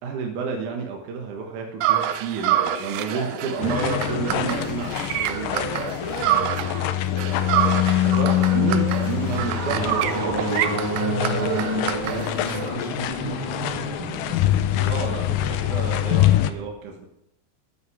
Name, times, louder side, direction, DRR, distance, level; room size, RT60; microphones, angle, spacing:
voice 1, 0.0-6.0 8.0-10.4 14.9-17.1, right 5 dB, 60° right, 1 dB, 2.3 m, -30 dB
sound 1, 1.8-6.9 7.2-12.7, right 11 dB, 80° right, 2.2 m, -27 dB
voice 2, 2.5-3.5 5.3-7.9 11.2-13.4 14.8-15.1, left 1 dB, 35° left, -2 dB, 2.5 m, -38 dB
sound 2, 3.6-16.5, left 12 dB, 80° left, 2.0 m, -25 dB
sound 3, 8.4-15.3, right 1 dB, 15° right, 1.4 m, -30 dB
13.5 x 8.5 x 4.8 m, 0.82 s
omnidirectional pair, 4.7 m